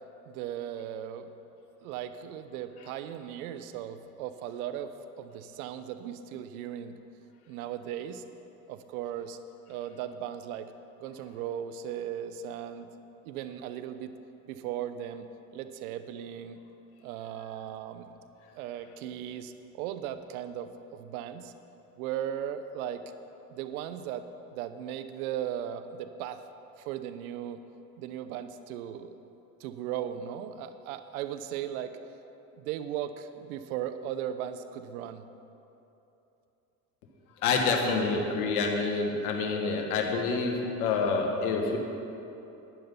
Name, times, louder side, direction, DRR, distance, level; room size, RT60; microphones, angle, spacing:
voice 1, 0.3-1.3 1.8-7.0 7.5-8.2 8.7-9.4 9.7-10.7 11.0-12.9 13.2-14.1 14.5-15.3 15.5-16.6 17.0-18.1 18.6-21.5 22.0-23.0 23.5-24.2 24.5-26.4 26.8-27.6 28.0-29.3 29.6-32.0 32.6-35.3, right 10 dB, 80° right, 11 dB, 0.8 m, -37 dB
voice 2, 37.4-41.8, left 4 dB, 80° left, 2 dB, 1.7 m, -27 dB
11.5 x 10.0 x 5.5 m, 2.9 s
hypercardioid pair, 75°, 43 cm